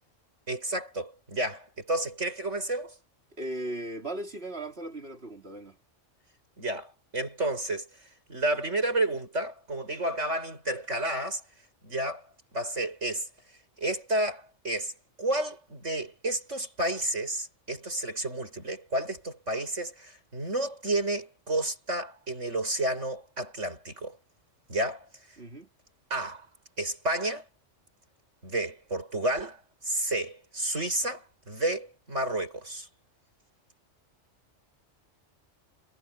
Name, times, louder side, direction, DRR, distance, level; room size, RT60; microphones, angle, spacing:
voice 1, 0.5-3.0 6.6-7.9 8.3-11.4 11.8-12.3 12.5-13.3 13.8-14.9 15.2-24.2 24.7-25.1 26.1-26.5 26.8-27.4 28.4-32.9, right 1 dB, 80° right, 7.9 m, -31 dB
voice 2, 3.4-5.8 25.4-25.7, right 1 dB, 55° right, 4.0 m, -37 dB
omnidirectional pair, 1.2 m